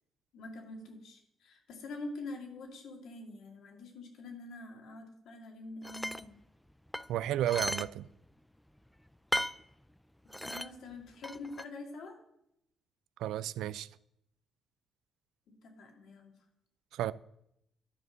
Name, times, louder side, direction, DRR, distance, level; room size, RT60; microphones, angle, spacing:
voice 1, 0.3-6.4 10.4-12.2 15.5-16.3, left 2 dB, 75° left, 2.4 m, -45 dB
sound 1, 5.8-6.2 6.9-7.9 8.2-8.3 9.3-9.6 10.3-10.7 11.2-11.6, equal, 5° left, 0.3 m, -35 dB
voice 2, 7.1-8.1 13.2-13.9 16.9-17.1, right 12 dB, 85° right, 0.3 m, -32 dB
11.5 x 5.3 x 6.3 m
cardioid pair, 90°, 0 cm